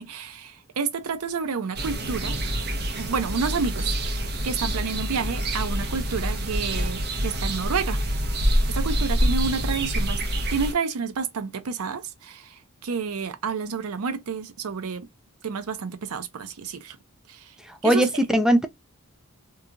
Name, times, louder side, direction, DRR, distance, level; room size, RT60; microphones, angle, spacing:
voice 1, 0.0-2.4 2.9-8.0 8.4-10.2 10.5-15.1 15.4-17.0 17.3-17.5 17.8-18.1, right 5 dB, 85° right, 0.5 m, -30 dB
sound 1, 1.7-10.7, right 1 dB, 50° right, 0.7 m, -26 dB
voice 2, 17.7-18.7, right 1 dB, 5° right, 0.3 m, -20 dB
2.8 x 2.3 x 2.4 m
head